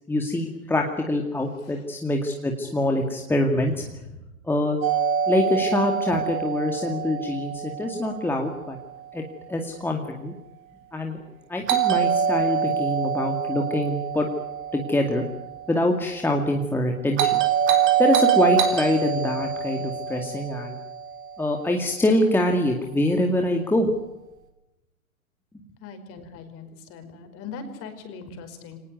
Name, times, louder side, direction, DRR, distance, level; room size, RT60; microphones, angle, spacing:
voice 1, 0.1-3.7 4.5-4.8 5.3-8.8 9.1-9.2 9.5-10.3 10.9-11.2 11.5-14.3 14.7-15.2 15.7-17.4 18.0-20.8 21.4-23.9, left 1 dB, 5° left, 2 dB, 2.2 m, -24 dB
Doorbell, 4.8-8.8 11.7-15.9 17.2-21.6, right 8 dB, 30° right, 4.0 m, -25 dB
voice 2, 25.8-28.8, left 5 dB, 35° left, 8 dB, 5.2 m, -40 dB
25.0 x 19.0 x 9.4 m, 0.96 s
figure-of-eight pair, 115°, 42 cm